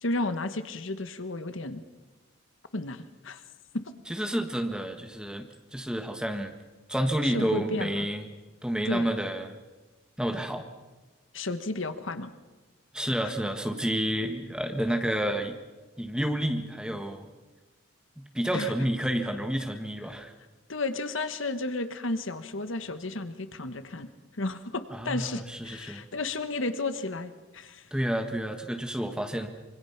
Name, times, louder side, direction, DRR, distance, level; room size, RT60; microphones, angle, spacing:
voice 1, 0.0-1.8 2.7-3.4 3.7-3.8 7.2-8.1 8.8-9.1 11.3-12.3 13.2-13.3 18.5-18.7 20.7-27.9, left 2 dB, 70° left, 10 dB, 1.2 m, -33 dB
voice 2, 4.1-5.4 5.7-6.5 6.9-8.3 8.6-9.6 10.2-10.7 12.9-15.6 16.0-17.3 18.2-20.3 24.9-26.0 27.9-29.5, right 1 dB, 5° right, 5 dB, 1.5 m, -30 dB
25.5 x 24.0 x 5.9 m, 1.2 s
head